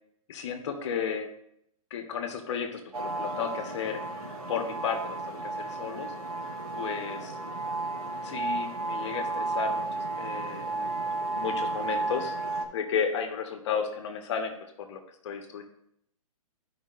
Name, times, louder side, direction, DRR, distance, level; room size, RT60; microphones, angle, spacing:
voice 1, 0.3-1.3 1.9-6.1 6.4-7.4 8.1-12.4 12.7-15.6, left 6 dB, 50° left, 5 dB, 1.3 m, -34 dB
sound 1, 2.9-12.6, right 3 dB, 85° right, 2.2 m, -33 dB
13.0 x 5.2 x 2.5 m, 0.74 s
hypercardioid pair, 140°, 19 cm